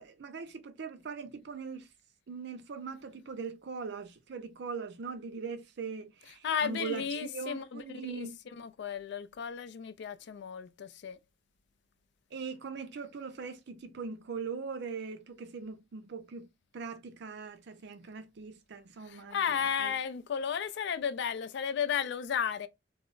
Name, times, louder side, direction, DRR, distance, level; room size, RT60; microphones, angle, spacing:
voice 1, 0.0-1.9 2.3-8.4 12.3-20.0, right 5 dB, 65° right, 0.5 m, -41 dB
voice 2, 6.4-8.3 8.6-11.2 19.1-22.7, left 7 dB, 65° left, 0.4 m, -34 dB
2.2 x 2.0 x 3.7 m
head